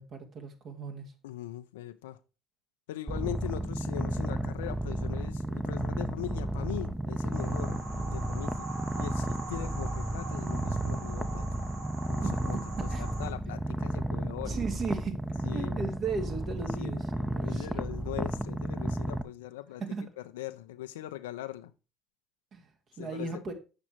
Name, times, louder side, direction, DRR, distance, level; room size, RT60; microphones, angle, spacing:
voice 1, 0.0-1.1 12.2-12.6 12.9-13.0 14.2-15.2 15.5-17.8 19.8-20.0 22.5-22.7 23.0-23.5, right 4 dB, 55° right, 2.2 m, -36 dB
voice 2, 1.2-2.2 2.9-11.6 12.1-14.6 15.4-15.9 16.8-19.8 20.2-21.7 23.0-23.4, left 14 dB, 85° left, 0.6 m, -41 dB
Purr, 3.1-19.2, right 1 dB, 10° right, 0.8 m, -33 dB
sound 1, 7.3-13.3, right 3 dB, 80° right, 3.6 m, -43 dB
7.6 x 6.0 x 4.5 m
hypercardioid pair, 60°, 0 cm